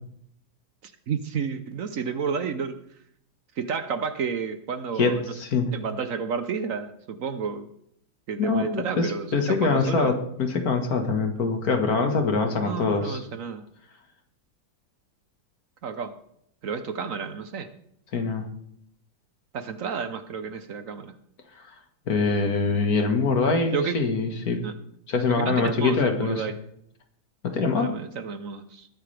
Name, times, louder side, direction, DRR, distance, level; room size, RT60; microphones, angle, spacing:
voice 1, 0.8-2.8 3.6-5.2 5.7-7.7 8.3-10.1 12.6-13.7 15.8-16.2 16.6-17.7 19.5-21.1 23.7-24.0 24.6-24.7 25.3-26.6 27.8-28.9, right 6 dB, 65° right, 10 dB, 0.8 m, -31 dB
voice 2, 5.0-5.7 8.4-13.2 18.1-18.5 21.6-21.7 22.1-24.6 25.1-26.4 27.4-27.9, left 4 dB, 50° left, 5 dB, 1.8 m, -24 dB
20.5 x 9.5 x 3.3 m, 0.72 s
omnidirectional pair, 2.3 m